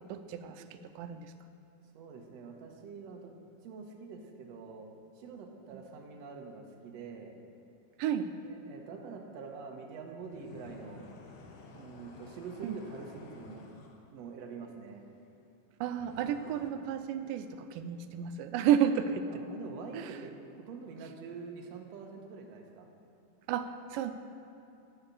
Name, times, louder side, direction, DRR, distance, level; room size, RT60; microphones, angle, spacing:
voice 1, 0.0-1.3 8.0-8.3 12.6-12.8 15.8-19.3 19.9-20.2 23.5-24.1, right 9 dB, 90° right, 9 dB, 2.2 m, -32 dB
voice 2, 1.9-3.3 3.6-4.9 5.2-7.3 8.4-11.1 11.7-13.6 14.1-15.0 19.3-22.9, right 5 dB, 65° right, 2 dB, 2.0 m, -45 dB
sound 1, 10.2-14.0 16.0-16.7, left 4 dB, 80° left, 1.2 m, -52 dB
11.0 x 7.2 x 7.0 m, 2.8 s
omnidirectional pair, 3.8 m